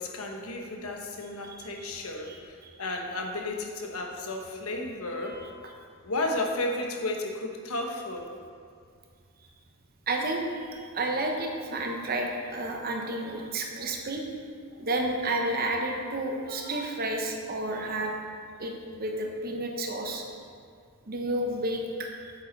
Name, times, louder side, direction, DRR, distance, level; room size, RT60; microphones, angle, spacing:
voice 1, 0.0-5.4 6.0-8.3, left 2 dB, 75° left, 2 dB, 1.1 m, -33 dB
voice 2, 1.4-1.9 2.3-2.7 5.3-5.5 10.1-14.2 14.8-18.2 18.6-20.2 21.1-22.3, right 1 dB, 45° right, 2 dB, 0.9 m, -31 dB
8.6 x 7.3 x 4.0 m, 2.2 s
head